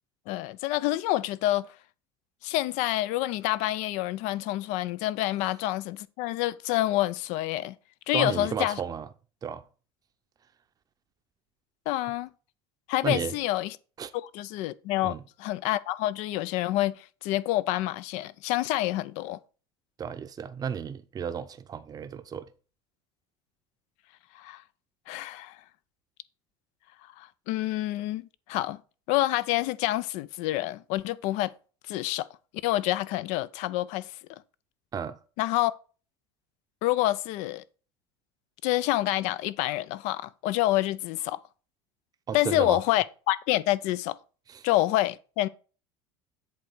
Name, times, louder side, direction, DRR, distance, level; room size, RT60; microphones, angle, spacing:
voice 1, 0.3-1.7 2.4-7.8 8.1-8.8 11.9-12.3 12.9-13.8 14.1-19.4 24.3-24.6 25.1-25.6 27.2-28.8 29.1-31.5 31.9-32.3 32.6-34.1 35.4-35.7 36.8-37.6 38.6-41.4 42.3-44.2 44.6-45.5, left 16 dB, 65° left, 0.5 m, -27 dB
voice 2, 8.1-9.1 9.4-9.6 13.0-13.3 14.0-14.1 15.0-15.2 20.0-22.5 34.9-35.2 42.3-42.8 44.5-44.7, right 7 dB, 30° right, 0.7 m, -33 dB
7.9 x 3.4 x 6.5 m
supercardioid pair, 90°, 13 cm